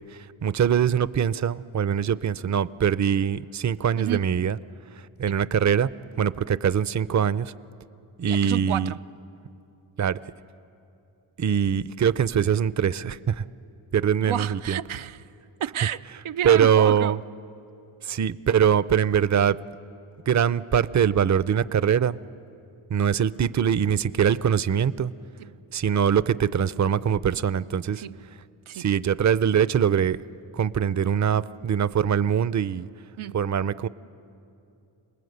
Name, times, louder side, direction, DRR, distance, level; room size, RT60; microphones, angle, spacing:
voice 1, 0.4-4.6 5.2-5.9 6.2-7.5 8.2-8.9 10.0-10.2 11.4-13.4 13.9-14.8 16.4-17.2 18.0-19.6 20.3-22.2 22.9-25.1 25.7-28.0 28.7-30.2 30.5-32.9 33.3-33.9, right 8 dB, 40° right, 17 dB, 0.6 m, -22 dB
voice 2, 4.0-4.3 5.3-5.4 8.3-9.0 14.2-15.2 15.6-17.2 28.0-28.2 28.7-28.9 33.2-33.4, right 11 dB, 80° right, 10 dB, 0.6 m, -31 dB
27.5 x 19.5 x 8.0 m, 2.6 s
cardioid pair, 45°, 47 cm